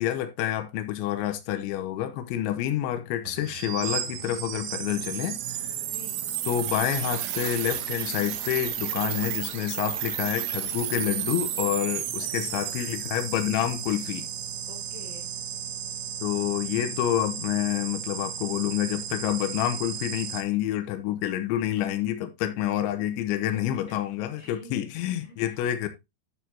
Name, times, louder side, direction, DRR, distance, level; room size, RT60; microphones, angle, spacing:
voice 1, 0.0-5.7 6.5-14.3 16.2-25.9, left 12 dB, 85° left, 3.3 m, -28 dB
sound 1, 3.2-20.4, right 10 dB, 75° right, 3.4 m, -33 dB
voice 2, 5.8-6.2 12.2-12.8 14.7-15.3 21.9-22.0 23.5-25.6, left 3 dB, 45° left, 2.6 m, -48 dB
10.5 x 6.7 x 2.8 m
omnidirectional pair, 5.4 m